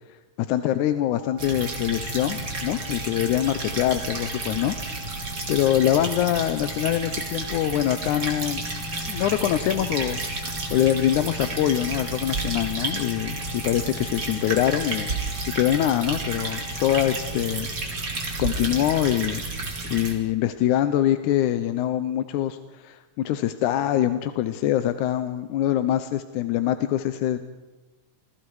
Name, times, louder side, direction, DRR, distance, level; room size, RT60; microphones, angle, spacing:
voice 1, 0.5-4.8 5.5-8.6 9.1-15.1 15.6-17.7 18.4-19.4 19.8-27.4, left 12 dB, 90° left, 10 dB, 2.3 m, -24 dB
sound 1, 1.0-17.3, left 5 dB, 80° right, 4.7 m, -45 dB
sound 2, 1.4-20.1, right 3 dB, 35° right, 3.6 m, -31 dB
29.0 x 21.5 x 4.8 m, 1.2 s
omnidirectional pair, 3.4 m